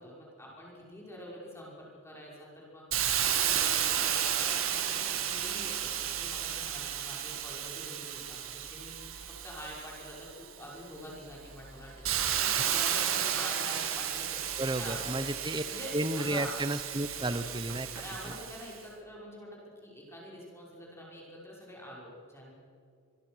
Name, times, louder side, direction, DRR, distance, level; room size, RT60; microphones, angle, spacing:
voice 1, 0.0-1.7 2.0-2.3 2.7-2.8 3.2-8.4 8.7-8.9 9.4-10.1 10.6-14.2 14.8-15.3 15.7-16.6 17.2-17.5 17.9-22.5, equal, 10° left, -4 dB, 5.8 m, -46 dB
Hiss, 2.9-10.5 11.0-18.7, right 9 dB, 80° right, 2.0 m, -33 dB
voice 2, 14.6-15.6 15.9-17.9, right 1 dB, 20° right, 12 dB, 1.0 m, -32 dB
26.0 x 22.0 x 6.4 m, 2.2 s
head